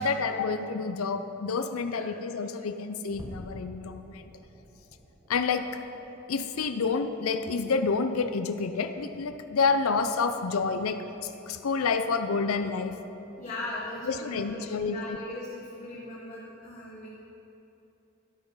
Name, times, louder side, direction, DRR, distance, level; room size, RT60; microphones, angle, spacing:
voice 1, 0.0-4.2 5.3-5.8 6.3-13.0 14.0-15.2, left 4 dB, 90° left, 8 dB, 0.5 m, -29 dB
sound 1, 3.1-9.8 10.1-10.4 10.8-11.0 11.5-11.7, equal, 15° right, 1.4 m, -51 dB
voice 2, 13.4-17.2, left 2 dB, 35° left, -6 dB, 1.5 m, -39 dB
12.0 x 8.9 x 5.5 m, 3.0 s
head